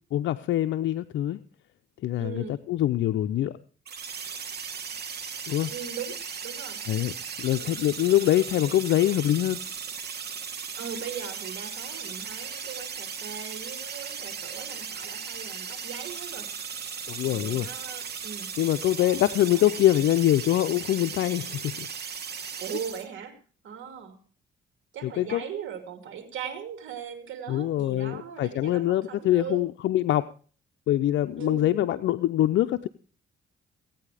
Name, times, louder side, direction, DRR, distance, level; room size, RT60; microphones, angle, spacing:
voice 1, 0.1-1.4 2.0-3.6 5.5-5.7 6.9-7.1 7.4-9.6 17.1-17.7 18.6-21.9 25.0-25.4 27.5-30.2 30.9-32.9, left 13 dB, 70° left, 9 dB, 0.6 m, -24 dB
voice 2, 2.2-2.6 5.7-6.2 6.4-6.8 7.6-7.8 10.8-16.5 17.3-18.5 19.0-19.3 19.5-19.8 22.6-23.4 23.6-24.2 24.9-29.6 31.4-32.0, right 7 dB, 75° right, 8 dB, 2.8 m, -39 dB
sound 1, 3.8-23.0, right 6 dB, 55° right, 2.2 m, -37 dB
17.5 x 9.2 x 4.9 m, 0.40 s
cardioid pair, 90°, 20 cm